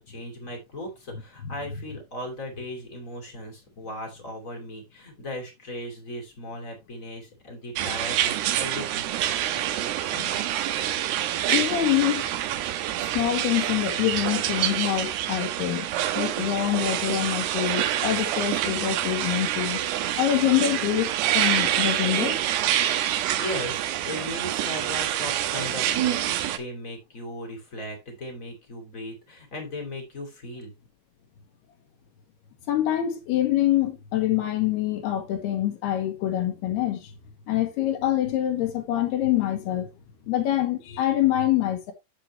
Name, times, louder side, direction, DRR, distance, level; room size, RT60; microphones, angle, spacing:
voice 1, 0.0-9.1 23.4-30.7, left 1 dB, 30° left, 1.5 m, -37 dB
sound 1, 7.8-26.6, right 12 dB, 80° right, 2.5 m, -26 dB
voice 2, 11.5-12.3 13.1-15.9 16.1-19.8 20.1-22.4 32.7-37.1 37.5-39.9 40.3-41.9, left 12 dB, 70° left, 2.7 m, -25 dB
8.6 x 7.4 x 3.0 m
omnidirectional pair, 5.7 m